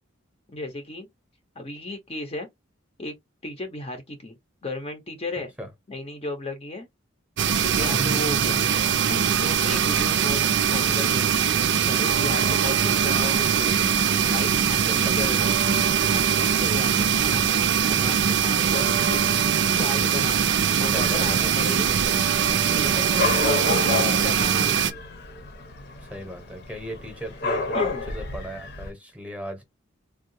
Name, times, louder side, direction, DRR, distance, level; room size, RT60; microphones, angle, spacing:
voice 1, 0.5-1.1 1.6-2.5 3.0-3.2 3.4-4.4 4.6-5.5 5.9-6.9 7.4-8.7 9.1-11.5 11.8-13.9 14.3-15.4 16.1-16.9 17.2-19.2 19.6-20.5 20.8-22.0 22.7-25.0 27.7-28.0, left 2 dB, 30° left, 0.7 m, -35 dB
sound 1, 7.4-24.9, right 8 dB, 60° right, 0.4 m, -22 dB
voice 2, 7.8-8.9 12.4-12.9 20.8-21.7 26.0-29.6, equal, 5° right, 0.9 m, -37 dB
Dog / Cat, 13.0-28.9, left 3 dB, 55° left, 0.8 m, -33 dB
3.6 x 2.3 x 2.6 m
head